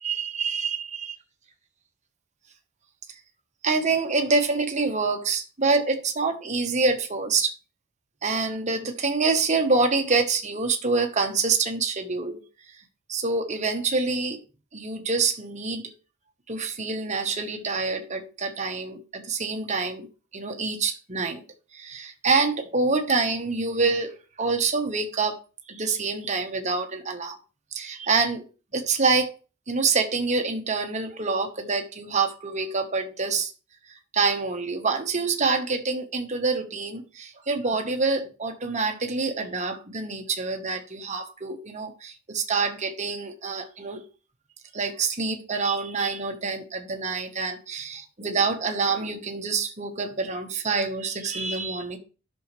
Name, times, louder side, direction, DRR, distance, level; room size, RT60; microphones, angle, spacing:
voice 1, 0.0-1.0 3.6-7.5 8.2-12.4 13.1-14.4 14.7-15.8 16.5-20.1 20.3-21.4 21.7-25.4 25.7-27.4 27.7-28.4 28.7-29.3 29.7-33.5 34.1-44.0 44.7-52.0, right 4 dB, 35° right, 1.2 m, -26 dB
10.5 x 6.4 x 3.2 m
head